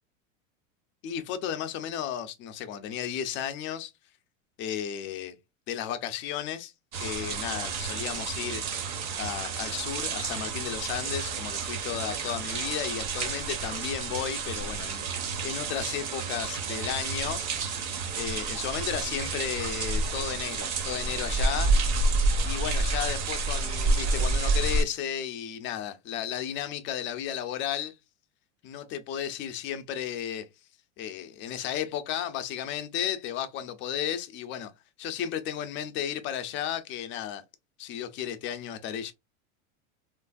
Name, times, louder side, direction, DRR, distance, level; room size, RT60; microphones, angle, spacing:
voice 1, 1.0-3.9 4.6-5.4 5.7-6.7 7.0-8.9 9.2-17.4 17.8-21.7 22.4-27.9 28.6-30.5 31.0-34.7 35.0-37.4 37.8-39.1, left 10 dB, 30° left, 0.4 m, -34 dB
sound 1, 6.9-24.8, right 3 dB, 40° right, 0.7 m, -29 dB
3.2 x 2.5 x 2.3 m
supercardioid pair, 130°, 41 cm